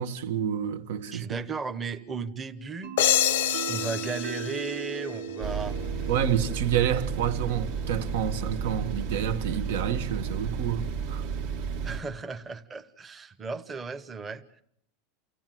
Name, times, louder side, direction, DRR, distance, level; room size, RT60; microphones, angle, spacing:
voice 1, 0.0-1.3 6.1-11.2, right 9 dB, 70° right, 1.5 m, -29 dB
voice 2, 1.1-2.9 3.7-5.8 11.8-14.6, right 4 dB, 15° right, 1.0 m, -35 dB
sound 1, 2.8-10.5, right 7 dB, 90° right, 2.5 m, -40 dB
sound 2, 3.0-5.6, left 12 dB, 85° left, 0.8 m, -27 dB
sound 3, 5.4-12.0, right 6 dB, 55° right, 1.6 m, -32 dB
29.0 x 16.0 x 7.8 m
supercardioid pair, 170°, 0 cm